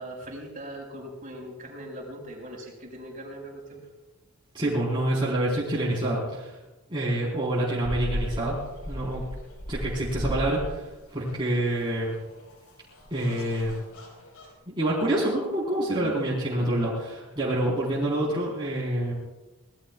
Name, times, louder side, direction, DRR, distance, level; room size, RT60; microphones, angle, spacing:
voice 1, 0.0-3.8 16.0-16.1, right 1 dB, 40° right, -1 dB, 5.3 m, -40 dB
voice 2, 4.5-6.5 6.9-8.6 8.9-9.2 9.7-12.2 13.1-13.7 14.7-19.1, right 1 dB, 20° right, -7 dB, 4.1 m, -27 dB
sound 1, 7.8-14.5, equal, 85° left, 5.5 m, -36 dB
25.0 x 19.5 x 2.4 m, 1.1 s
head